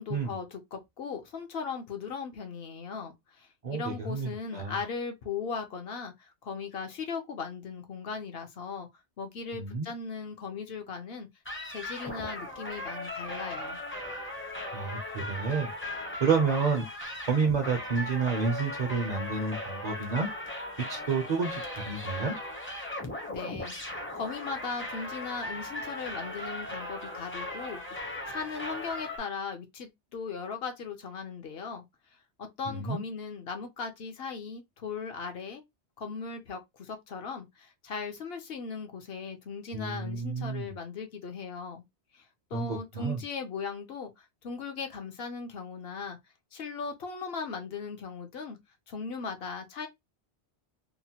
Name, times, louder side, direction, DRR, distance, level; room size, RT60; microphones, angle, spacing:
voice 1, 0.0-8.9 9.2-11.3 11.7-13.8 23.3-31.8 32.4-35.6 36.0-41.8 42.1-42.2 42.5-46.2 46.5-48.6 48.9-49.9, left 5 dB, 65° left, 0.8 m, -38 dB
voice 2, 3.6-4.8 9.5-9.9 14.7-15.7 16.2-16.9 17.3-20.3 20.9-22.4 32.7-33.0 39.7-40.7 42.5-43.2, right 5 dB, 50° right, 0.5 m, -30 dB
sound 1, 11.4-29.2, left 1 dB, 15° left, 0.5 m, -38 dB
2.9 x 2.1 x 2.8 m
omnidirectional pair, 1.2 m